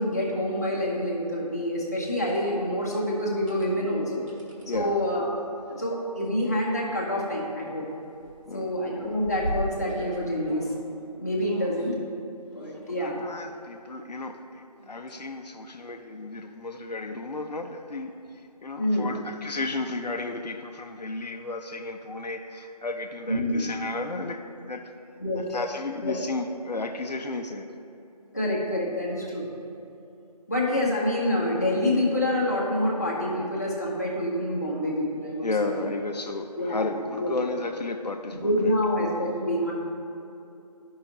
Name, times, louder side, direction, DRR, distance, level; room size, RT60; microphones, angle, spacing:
voice 1, 0.0-4.2 4.7-5.3 5.7-7.8 8.5-10.7 11.2-11.9 12.5-13.2 18.8-19.1 23.3-23.6 25.2-25.4 26.0-26.1 28.3-29.5 30.5-35.9 36.6-36.9 37.1-37.3 38.4-39.7, left 1 dB, 25° left, -5 dB, 0.9 m, -27 dB
sound 1, 2.3-2.5 3.3-3.7 4.3-4.6 5.8-6.1 6.5-6.6 6.9-7.9 8.2-10.8 11.4-11.9 12.6-13.5 14.7-15.3 15.8-15.9 18.3-18.4, equal, 50° right, 1.6 m, -38 dB
voice 2, 4.6-5.0 8.5-8.8 11.6-11.7 12.6-24.9 25.3-27.7 29.2-29.3 35.4-38.7, left 3 dB, 85° left, 5 dB, 0.6 m, -33 dB
10.0 x 5.5 x 2.8 m, 2.8 s
figure-of-eight pair, 175°, 21 cm